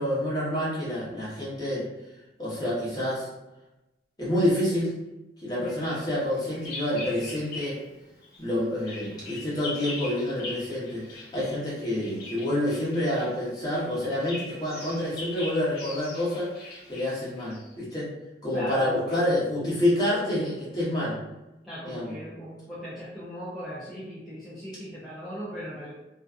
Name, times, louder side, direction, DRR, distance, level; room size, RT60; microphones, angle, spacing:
voice 1, 0.0-1.8 2.4-3.3 4.2-5.0 5.4-7.8 8.4-18.1 18.4-21.2 21.8-22.1, left 1 dB, 25° left, -8 dB, 1.0 m, -28 dB
Bird vocalization bird call bird song, 5.6-7.9 8.2-17.7, left 2 dB, 60° left, 0.9 m, -42 dB
voice 2, 18.5-19.3 21.6-25.9, equal, ahead, -10 dB, 0.5 m, -38 dB
2.6 x 2.3 x 2.3 m, 0.99 s
head